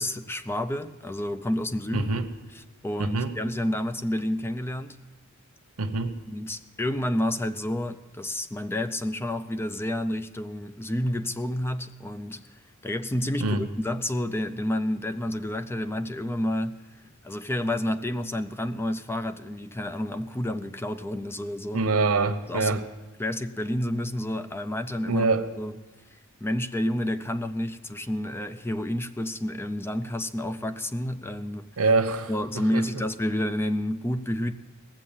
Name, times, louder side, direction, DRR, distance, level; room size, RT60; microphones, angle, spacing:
voice 1, 0.0-2.1 2.5-5.0 6.3-21.9 22.5-22.9 23.2-25.3 25.6-25.8 26.4-31.7 32.3-34.5, left 1 dB, 10° left, 9 dB, 0.4 m, -30 dB
voice 2, 1.9-2.3 3.0-3.3 5.8-6.2 13.4-13.7 21.7-22.8 25.1-25.5 31.8-32.8, right 3 dB, 90° right, 9 dB, 0.9 m, -25 dB
18.5 x 7.4 x 7.3 m, 1.2 s
head